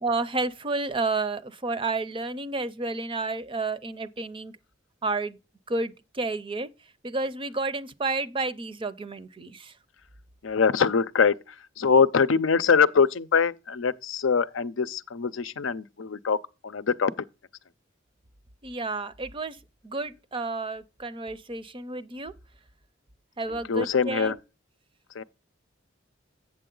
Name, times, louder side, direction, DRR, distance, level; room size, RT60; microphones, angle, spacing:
voice 1, 0.0-4.6 5.0-5.4 5.7-6.7 7.0-9.7 18.6-19.6 19.8-22.3 23.4-24.4, right 3 dB, 25° right, 0.5 m, -31 dB
voice 2, 10.4-11.4 11.8-16.4 16.6-17.1 23.7-24.3 25.2-25.3, left 5 dB, 80° left, 0.6 m, -23 dB
8.5 x 6.9 x 3.8 m
head